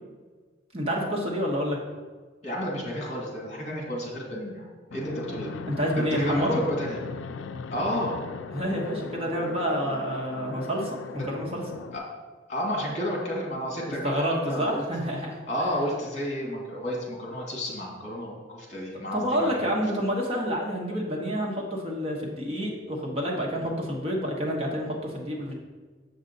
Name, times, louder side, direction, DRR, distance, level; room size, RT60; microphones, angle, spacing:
voice 1, 0.7-1.8 5.7-6.6 8.5-11.6 14.0-15.4 19.1-25.5, equal, 30° right, -2 dB, 1.2 m, -28 dB
voice 2, 2.4-4.6 4.9-5.5 6.0-7.0 7.7-8.2 11.2-11.3 11.9-12.0 12.5-14.8 15.5-19.7, equal, 40° left, -2 dB, 2.1 m, -31 dB
Fixed-wing aircraft airplane, 4.9-12.0, left 5 dB, 80° left, 0.4 m, -39 dB
7.2 x 6.4 x 3.9 m, 1.4 s
head